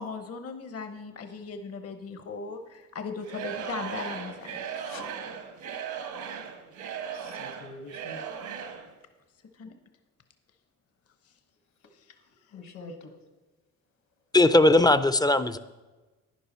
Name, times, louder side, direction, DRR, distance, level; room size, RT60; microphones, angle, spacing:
voice 1, 0.0-4.6 9.5-9.7 11.2-11.3 11.9-12.2, left 4 dB, 50° left, 8 dB, 0.9 m, -38 dB
Singing / Crowd, 3.2-8.9, right 7 dB, 80° right, 1.2 m, -37 dB
voice 2, 4.7-5.1 7.1-8.2 12.2-13.2, left 3 dB, 70° left, 7 dB, 1.6 m, -46 dB
voice 3, 14.3-15.6, left 2 dB, 15° left, 13 dB, 0.4 m, -19 dB
11.0 x 10.0 x 4.2 m, 1.2 s
cardioid pair, 90°, 30 cm